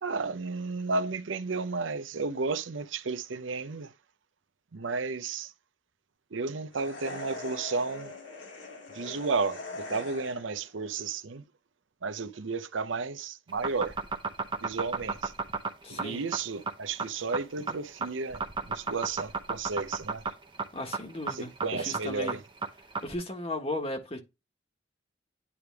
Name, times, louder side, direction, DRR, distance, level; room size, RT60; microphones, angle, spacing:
voice 1, 0.0-3.9 4.7-5.5 6.3-8.2 8.9-11.4 12.0-14.0 14.6-15.3 15.9-20.2 21.3-22.4, right 4 dB, 90° right, 0.7 m, -33 dB
sound 1, 6.7-10.6, left 3 dB, 80° left, 2.8 m, -41 dB
sound 2, 13.5-23.1, right 4 dB, 25° right, 0.9 m, -33 dB
voice 2, 15.8-16.2 20.7-22.4 23.0-24.2, left 1 dB, 30° left, 1.5 m, -36 dB
9.9 x 3.4 x 3.4 m
head